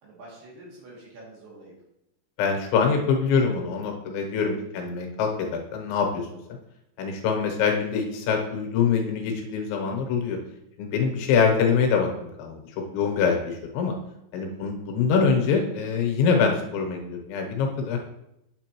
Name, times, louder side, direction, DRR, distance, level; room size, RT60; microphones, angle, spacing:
voice 1, 0.0-1.7 4.7-4.8 14.5-14.8, right 1 dB, 65° right, -5 dB, 4.3 m, -47 dB
voice 2, 2.4-5.3 5.7-6.3 7.0-10.4 10.8-12.6 12.9-13.9 14.3-18.0, left 5 dB, 80° left, 2 dB, 3.3 m, -24 dB
9.0 x 7.2 x 3.0 m, 0.83 s
omnidirectional pair, 5.2 m